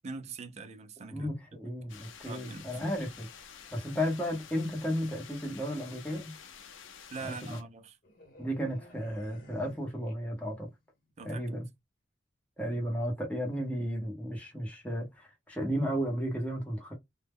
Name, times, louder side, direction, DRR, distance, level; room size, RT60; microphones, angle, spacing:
voice 1, 0.0-1.3 2.2-2.8 7.1-8.0 11.2-11.6, right 4 dB, 35° right, 0.4 m, -43 dB
voice 2, 1.1-3.3 3.7-6.3 7.2-7.6 8.4-10.7 11.2-11.6 12.6-16.9, equal, 10° left, 0.7 m, -34 dB
sound 1, 1.9-7.6, left 8 dB, 90° left, 0.5 m, -50 dB
sound 2, 8.0-10.7 11.0-11.3, equal, 50° left, 0.9 m, -55 dB
2.1 x 2.0 x 3.4 m
head